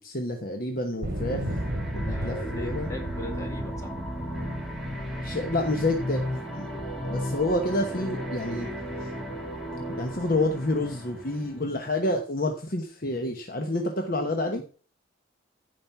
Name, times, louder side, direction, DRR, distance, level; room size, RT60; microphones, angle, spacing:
voice 1, 0.0-1.6 1.9-2.9 5.2-6.2 6.5-6.7 7.1-8.7 9.0-9.1 10.0-14.6, left 2 dB, 45° left, 4 dB, 1.1 m, -28 dB
sound 1, 1.0-6.2 6.8-7.6, equal, 45° right, 2.8 m, -34 dB
sound 2, 1.2-11.7, equal, ahead, 2.2 m, -35 dB
voice 2, 2.0-3.9, left 1 dB, 15° left, 2 dB, 2.3 m, -40 dB
14.5 x 5.3 x 5.9 m, 0.40 s
head